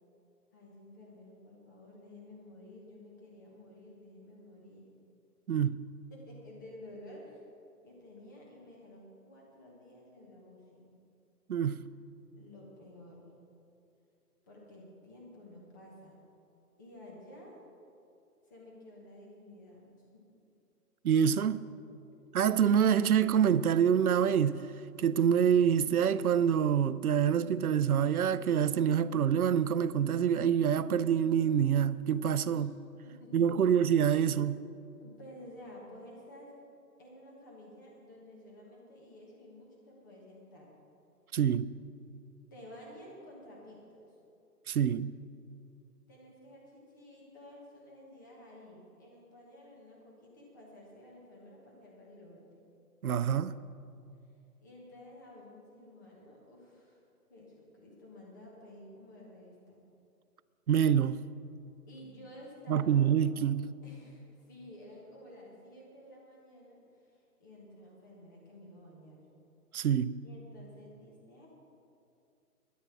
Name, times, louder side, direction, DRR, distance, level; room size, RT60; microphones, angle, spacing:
voice 1, 0.5-4.8 6.1-7.4 7.8-10.9 11.7-11.9 12.3-13.3 14.5-16.2 16.8-17.6 18.4-20.2 22.1-22.3 32.5-32.7 33.0-33.7 35.0-36.6 37.0-40.7 42.5-44.2 46.1-52.6 54.6-57.0 57.3-59.8 61.9-63.0 63.8-69.2 70.2-71.5, left 1 dB, 10° left, 1.2 m, -52 dB
voice 2, 5.5-5.8 11.5-11.8 21.0-21.6 22.3-24.6 25.0-32.7 33.3-34.6 41.3-41.7 44.7-45.1 53.0-53.6 60.7-61.2 62.7-63.7 69.7-70.2, right 8 dB, 65° right, 0.6 m, -26 dB
12.5 x 9.4 x 6.0 m
hypercardioid pair, 170°, 47 cm